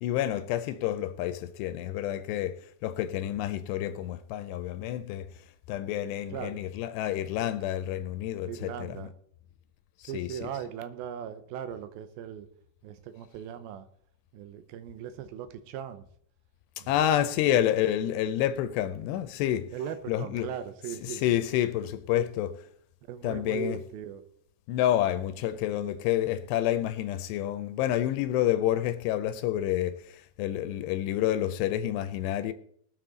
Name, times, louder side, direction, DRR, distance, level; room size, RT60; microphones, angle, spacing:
voice 1, 0.0-5.3 5.7-9.0 10.0-10.5 16.8-19.7 20.1-20.5 21.1-22.5 23.2-23.8 24.7-32.5, left 12 dB, 80° left, 2.6 m, -29 dB
voice 2, 6.3-6.6 8.5-9.1 10.1-12.5 12.8-13.9 14.3-16.1 16.8-16.9 17.5-17.6 19.7-21.2 22.1-22.3 23.1-24.2, right 8 dB, 85° right, 2.1 m, -38 dB
20.5 x 7.3 x 3.9 m
omnidirectional pair, 5.1 m